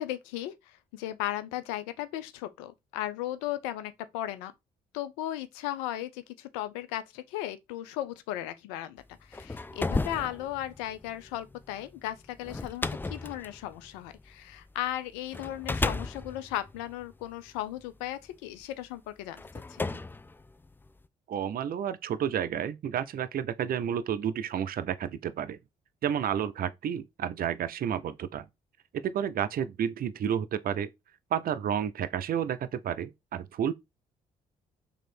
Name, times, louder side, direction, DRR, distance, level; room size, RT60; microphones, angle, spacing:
voice 1, 0.0-4.5 4.9-20.0, left 13 dB, 85° left, 0.5 m, -36 dB
sound 1, 9.1-14.7 15.3-17.8 18.6-18.7 19.4-21.1, left 3 dB, 10° left, 0.3 m, -35 dB
voice 2, 21.3-25.6 26.0-28.5 28.9-30.9 31.3-33.7, right 9 dB, 50° right, 0.5 m, -31 dB
3.1 x 2.8 x 4.2 m
hypercardioid pair, 45°, 19 cm